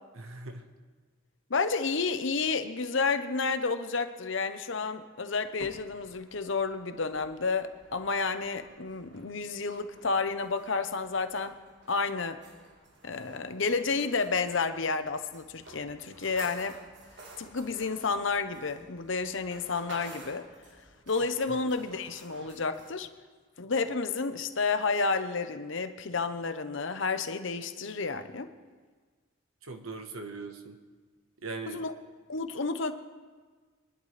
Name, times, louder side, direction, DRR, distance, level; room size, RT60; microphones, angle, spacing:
voice 1, 0.1-0.6 21.5-21.6 29.6-30.8 31.4-31.8, right 3 dB, 80° right, 5 dB, 1.3 m, -40 dB
voice 2, 1.5-11.6 11.9-12.4 13.0-16.8 17.4-20.5 21.1-23.1 23.6-28.5 31.7-31.9 32.3-32.9, left 4 dB, 65° left, 9 dB, 0.9 m, -31 dB
sound 1, 5.4-22.9, right 2 dB, 55° right, 1.8 m, -53 dB
25.0 x 11.0 x 3.3 m, 1.5 s
head